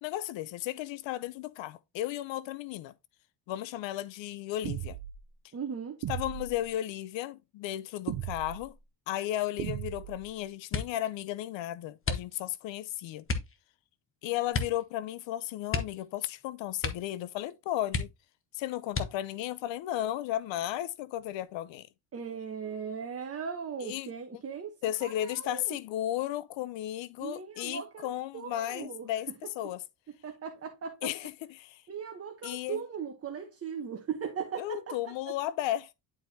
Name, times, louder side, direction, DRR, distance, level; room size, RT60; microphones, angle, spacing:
voice 1, 0.0-2.9 3.5-5.0 6.1-8.8 9.1-13.2 14.2-18.1 18.5-21.9 23.8-24.1 24.8-29.3 29.6-29.8 31.0-31.8 32.4-32.8 34.6-35.9, left 13 dB, 85° left, 0.6 m, -34 dB
sound 1, 4.6-5.2 6.0-6.6 8.1-8.6 9.6-10.2, right 12 dB, 60° right, 0.7 m, -36 dB
voice 2, 5.5-6.0 22.1-24.7 25.0-25.8 27.2-29.1 30.2-31.1 31.9-35.1, right 7 dB, 30° right, 1.0 m, -38 dB
sound 2, 10.7-11.1 12.0-12.7 13.2-13.6 14.5-14.9 15.1-15.2 15.7-16.4 16.8-17.2 17.5-17.6 17.9-18.4 18.9-19.4 20.2-20.8 21.2-21.5, left 4 dB, 30° left, 1.2 m, -34 dB
10.5 x 4.5 x 2.7 m
cardioid pair, 135°, 44 cm